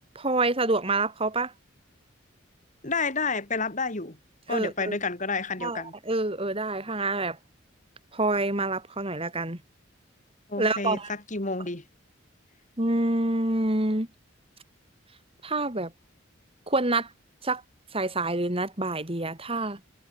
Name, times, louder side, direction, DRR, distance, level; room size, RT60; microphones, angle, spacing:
voice 1, 0.2-1.5 4.5-5.0 5.6-7.4 8.1-9.6 10.6-11.1 12.8-14.1 15.4-15.9 16.7-17.1 17.4-17.6 17.9-19.8, right 2 dB, 30° right, 3.8 m, -27 dB
voice 2, 2.8-4.2 4.5-5.9 10.5-11.8, left 4 dB, 40° left, 3.6 m, -30 dB
head